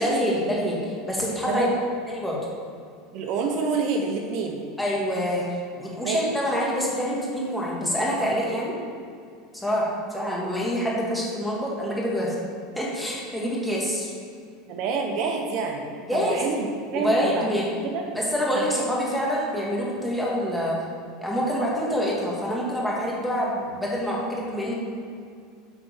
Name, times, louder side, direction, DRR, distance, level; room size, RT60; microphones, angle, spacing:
voice 1, 0.0-1.7 2.1-2.4 4.8-8.8 9.5-12.4 12.8-14.1 16.1-16.5 16.9-17.6 18.1-20.8 21.2-24.7, equal, 5° left, -5 dB, 2.0 m, -26 dB
voice 2, 3.1-4.6 6.0-6.2 14.7-17.5 17.8-18.0 18.5-18.8, right 4 dB, 55° right, 2 dB, 1.1 m, -28 dB
8.3 x 4.3 x 6.6 m, 2.2 s
supercardioid pair, 135°, 0 cm